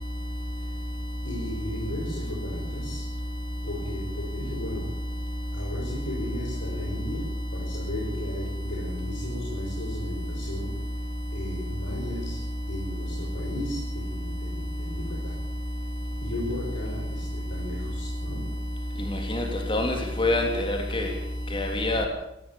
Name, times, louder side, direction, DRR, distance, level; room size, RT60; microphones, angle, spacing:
voice 1, 1.2-3.0 3.6-4.9 5.5-10.8 11.3-12.4 12.7-15.4 16.2-18.5, left 1 dB, 85° left, -3 dB, 6.5 m, -35 dB
voice 2, 19.1-19.4 19.7-21.1 21.5-22.1, left 2 dB, 25° left, 3 dB, 3.2 m, -26 dB
19.0 x 16.5 x 8.9 m, 0.83 s
head